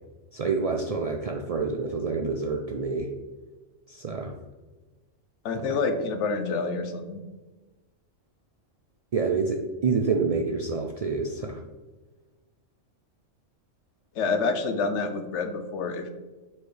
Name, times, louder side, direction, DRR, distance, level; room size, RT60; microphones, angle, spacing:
voice 1, 0.3-3.1 3.9-4.3 5.5-5.7 9.1-11.6, right 4 dB, 65° right, 1 dB, 0.3 m, -27 dB
voice 2, 5.4-7.2 14.2-16.1, left 4 dB, 70° left, 7 dB, 1.0 m, -28 dB
7.1 x 4.6 x 3.3 m, 1.2 s
omnidirectional pair, 1.3 m